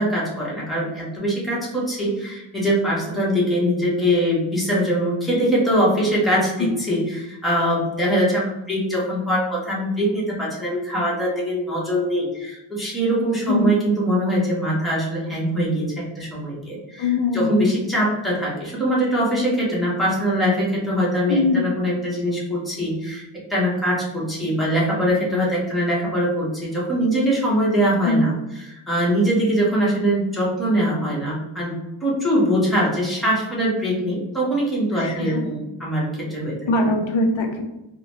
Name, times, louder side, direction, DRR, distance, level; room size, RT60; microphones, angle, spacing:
voice 1, 0.0-36.6, equal, ahead, -6 dB, 0.9 m, -22 dB
voice 2, 17.0-17.7 21.3-21.7 28.0-28.2 34.9-35.4 36.7-37.7, left 2 dB, 75° left, 3 dB, 0.6 m, -21 dB
3.7 x 2.1 x 2.9 m, 0.97 s
wide cardioid pair, 165°, 47 cm